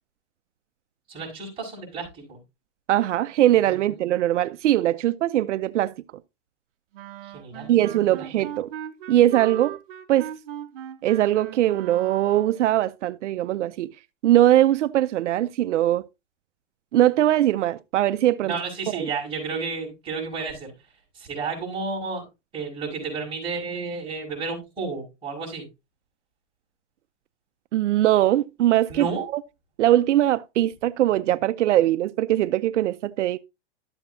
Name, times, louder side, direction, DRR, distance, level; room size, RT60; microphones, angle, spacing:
voice 1, 1.1-2.4 3.6-4.0 7.2-7.9 18.4-20.7 21.1-22.2 22.5-25.6 28.9-29.2, right 4 dB, 15° right, 5.7 m, -32 dB
voice 2, 2.9-5.9 7.7-8.7 9.1-9.8 10.1-10.3 11.0-13.9 14.2-16.0 16.9-18.5 18.9-19.1 27.7-29.2 29.8-33.4, right 13 dB, 85° right, 0.6 m, -21 dB
Wind instrument woodwind instrument, 6.9-12.7, right 11 dB, 50° right, 1.1 m, -39 dB
12.5 x 7.9 x 2.7 m
supercardioid pair, 165°, 35 cm